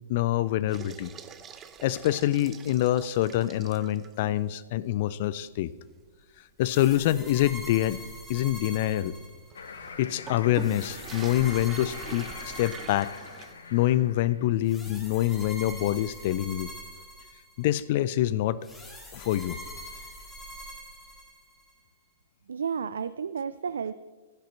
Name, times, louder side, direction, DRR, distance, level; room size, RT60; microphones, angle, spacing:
voice 1, 0.1-1.1 1.8-5.7 6.6-8.0 8.3-9.1 10.0-13.1 13.7-16.7 17.6-18.6 19.1-19.6, left 13 dB, 50° left, 18 dB, 0.3 m, -26 dB
sound 1, 0.7-4.3 4.7-4.8 5.3-5.4 5.9-13.5, right 7 dB, 20° right, 0.7 m, -45 dB
sound 2, 6.6-9.8 10.6-13.7 14.6-17.8 18.6-21.7, equal, 10° left, 2.2 m, -44 dB
sound 3, 9.5-14.6, left 5 dB, 70° left, 0.8 m, -43 dB
voice 2, 22.5-23.9, right 6 dB, 70° right, 13 dB, 0.3 m, -32 dB
16.0 x 6.5 x 4.4 m, 1.4 s
figure-of-eight pair, 115°, 0 cm